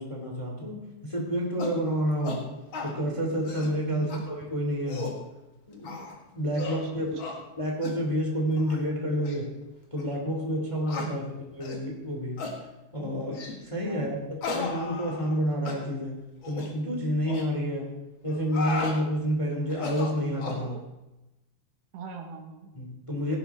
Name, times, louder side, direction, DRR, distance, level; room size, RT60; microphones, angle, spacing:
voice 1, 0.0-2.4 2.8-5.1 5.7-6.0 6.3-7.1 7.6-9.4 9.9-11.2 11.5-12.4 12.9-16.1 16.4-17.9 18.2-20.7 22.7-23.4, equal, 20° left, -1 dB, 0.8 m, -29 dB
sound 1, 1.6-1.8 2.2-2.4 2.7-2.9 3.3-3.7 4.1-4.2 4.7-5.2 5.8-6.1 6.5-6.8 7.2-7.4 7.8-8.0 8.6-8.8 9.2-9.4 10.0-10.1 10.9-11.1 11.6-11.8 12.4-12.6 13.3-13.6 14.4-15.4 15.7-15.8 16.4-16.7 17.3-17.5 18.3-19.0 19.7-20.6, left 4 dB, 60° left, 1.3 m, -35 dB
voice 2, 3.9-4.2 6.8-7.4 11.0-11.3 13.8-14.3 20.6-20.8 21.9-22.7, right 5 dB, 90° right, 4 dB, 3.6 m, -43 dB
17.0 x 11.5 x 3.5 m, 0.99 s
omnidirectional pair, 5.0 m